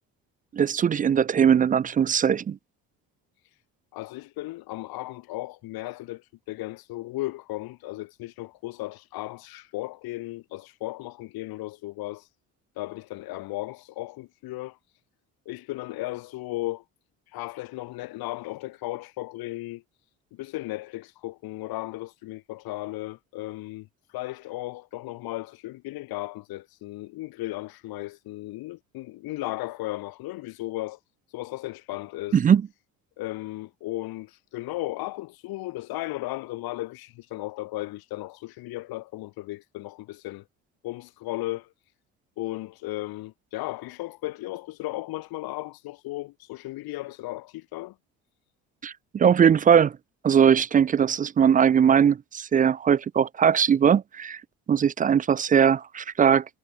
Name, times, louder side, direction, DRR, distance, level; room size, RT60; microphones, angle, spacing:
voice 1, 0.5-2.6 32.3-32.6 48.8-50.0 50.2-54.4 54.7-56.4, right 8 dB, 25° right, 0.4 m, -20 dB
voice 2, 3.9-12.3 12.8-15.0 15.5-16.8 17.3-19.8 20.3-31.0 31.3-32.4 33.2-40.4 40.8-41.7 42.4-47.9, left 18 dB, 70° left, 2.8 m, -35 dB
hypercardioid pair, 65°, 38 cm